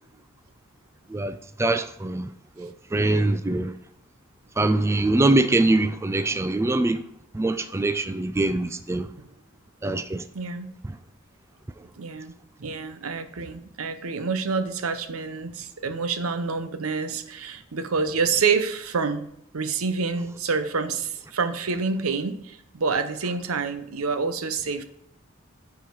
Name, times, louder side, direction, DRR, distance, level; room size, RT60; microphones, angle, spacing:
voice 1, 1.1-2.3 2.6-3.7 4.6-7.0 7.3-9.1 9.8-10.2, right 2 dB, 15° right, 0.3 m, -23 dB
voice 2, 10.3-10.7 12.0-12.3 12.6-19.3 19.5-24.8, right 5 dB, 90° right, 0.8 m, -27 dB
9.2 x 5.0 x 4.7 m
head